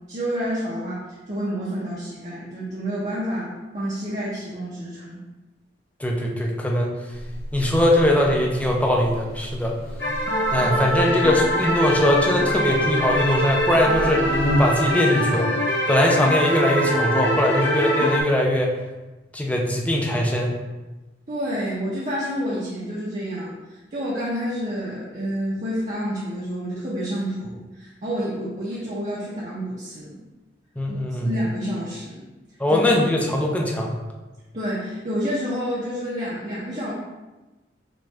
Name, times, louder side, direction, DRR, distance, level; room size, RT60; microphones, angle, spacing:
voice 1, 0.1-1.0 1.3-5.2 21.3-30.2 30.9-31.0 31.2-32.2 32.7-32.8 34.5-36.9, equal, 40° right, -7 dB, 0.9 m, -29 dB
voice 2, 6.0-6.9 7.5-9.7 10.5-15.5 15.9-18.7 19.3-20.5 30.8-31.3 32.6-33.9, left 1 dB, 10° left, -1 dB, 0.6 m, -21 dB
Buzz, 7.1-14.9, equal, 30° left, 1.4 m, -31 dB
sound 1, 10.0-18.2, equal, 65° left, 1.0 m, -23 dB
6.0 x 2.5 x 3.3 m, 1.1 s
head